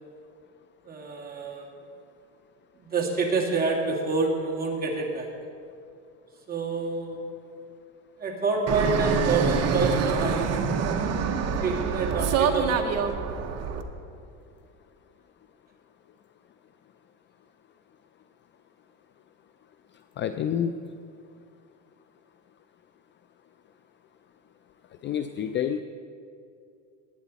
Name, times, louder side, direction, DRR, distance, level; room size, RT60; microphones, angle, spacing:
voice 1, 0.8-1.7 2.8-5.3 6.5-7.2 8.2-11.2 11.6-13.1, right 3 dB, 25° right, -1 dB, 2.2 m, -28 dB
Fixed-wing aircraft airplane, 8.7-13.8, right 6 dB, 40° right, 1.0 m, -26 dB
voice 2, 20.2-20.7 25.0-25.8, left 9 dB, 30° left, 9 dB, 0.3 m, -28 dB
19.5 x 9.1 x 4.1 m, 2.5 s
cardioid pair, 140°, 39 cm